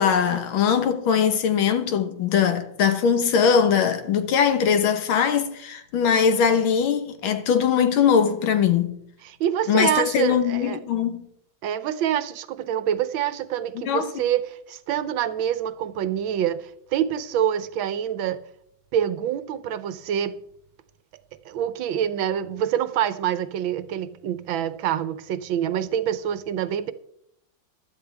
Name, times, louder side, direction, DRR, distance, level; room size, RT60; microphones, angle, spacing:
voice 1, 0.0-9.0 9.7-11.2 13.8-14.2, left 7 dB, 90° left, 1.9 m, -21 dB
voice 2, 9.2-10.8 11.6-18.4 18.9-20.3 21.4-26.9, right 10 dB, 80° right, 1.5 m, -26 dB
16.0 x 12.0 x 3.4 m
omnidirectional pair, 2.1 m